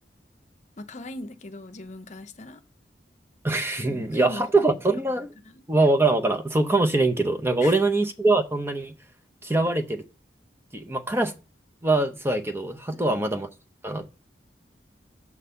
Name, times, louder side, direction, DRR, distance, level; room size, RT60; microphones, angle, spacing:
voice 1, 0.8-2.6 3.8-4.8 5.4-5.7 7.6-7.7 12.9-13.3, left 2 dB, 40° left, 0.8 m, -40 dB
voice 2, 3.4-5.3 5.7-8.9 9.4-10.0 10.7-11.3 11.8-13.5 13.8-14.1, right 2 dB, 15° right, 0.7 m, -23 dB
8.5 x 4.0 x 6.8 m
head